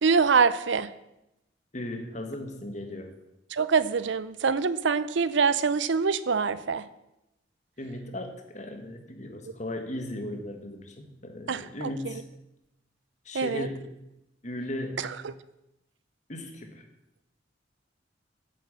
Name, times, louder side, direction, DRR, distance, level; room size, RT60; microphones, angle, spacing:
voice 1, 0.0-0.9 3.5-6.8 11.5-11.9 13.3-13.7, right 5 dB, 70° right, 15 dB, 0.6 m, -24 dB
voice 2, 1.7-3.1 7.8-12.3 13.2-13.9 14.4-15.1 16.3-16.8, left 1 dB, 40° left, 4 dB, 1.6 m, -37 dB
8.4 x 8.0 x 7.5 m, 0.90 s
head